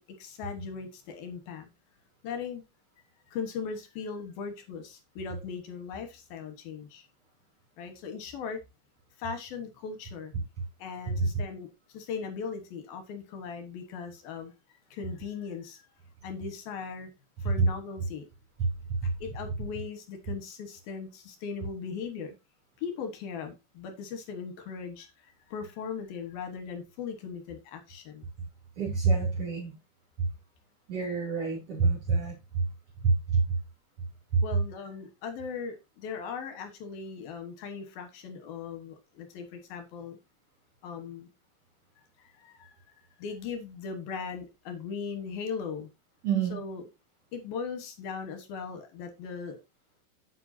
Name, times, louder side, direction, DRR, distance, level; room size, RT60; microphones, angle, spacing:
voice 1, 0.0-1.7 2.2-2.6 3.3-7.1 7.8-8.6 9.2-10.3 10.8-14.5 14.9-15.8 16.2-17.1 17.4-18.3 19.2-22.3 22.8-28.3 34.4-40.2 40.8-41.3 42.2-42.8 43.2-45.9 46.5-46.8 47.3-49.6, left 6 dB, 65° left, 7 dB, 2.8 m, -38 dB
voice 2, 28.8-29.7 30.9-32.7 33.0-33.6 34.3-34.4 46.2-46.6, right 4 dB, 35° right, -4 dB, 3.5 m, -26 dB
10.0 x 8.0 x 2.7 m, 0.24 s
omnidirectional pair, 5.2 m